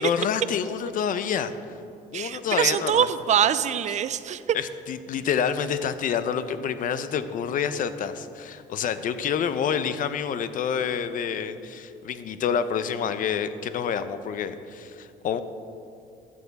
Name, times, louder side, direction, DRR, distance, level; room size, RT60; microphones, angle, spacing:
voice 1, 0.0-1.5 2.1-3.1 4.5-15.4, left 7 dB, 55° left, 12 dB, 0.6 m, -28 dB
voice 2, 2.1-4.6, right 9 dB, 45° right, 14 dB, 0.4 m, -24 dB
11.0 x 9.2 x 4.0 m, 2.6 s
cardioid pair, 110°, 17 cm